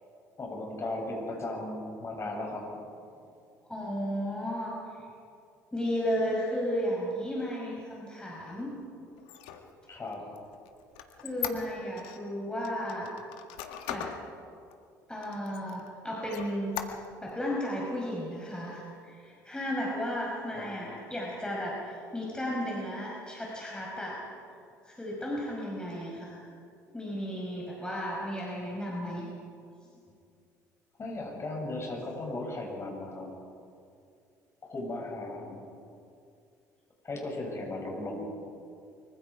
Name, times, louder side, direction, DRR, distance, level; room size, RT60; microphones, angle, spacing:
voice 1, 0.4-2.6 9.9-10.2 20.5-20.7 31.0-33.3 34.7-35.6 37.0-38.3, left 2 dB, 30° left, 0 dB, 7.5 m, -36 dB
voice 2, 3.7-4.8 5.7-8.7 11.2-13.2 13.9-14.1 15.1-16.8 17.2-24.2 24.5-26.5 26.9-29.3, equal, 10° left, -3 dB, 5.3 m, -34 dB
Squeak, 9.2-12.2 12.6-14.2 14.7-14.8 15.2-15.9 16.3-17.3, left 10 dB, 65° left, 1.7 m, -39 dB
24.5 x 24.5 x 5.0 m, 2.4 s
figure-of-eight pair, 55°, 9 cm